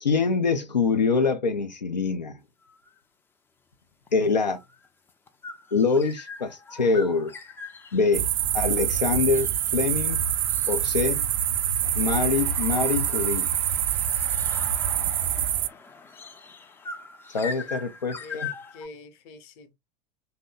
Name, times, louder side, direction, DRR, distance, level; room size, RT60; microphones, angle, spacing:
voice 1, 0.0-2.4 4.1-4.6 5.7-7.3 7.9-8.3 8.5-10.2 10.7-11.2 11.9-13.5 17.3-18.5, left 4 dB, 85° left, 0.4 m, -24 dB
sound 1, 2.6-3.0 4.1-18.9, left 4 dB, 10° left, 0.3 m, -42 dB
sound 2, 8.1-15.7, right 10 dB, 55° right, 0.4 m, -25 dB
voice 2, 17.5-17.8 18.2-19.7, left 2 dB, 45° left, 0.7 m, -45 dB
2.7 x 2.0 x 3.8 m
figure-of-eight pair, 85°, 21 cm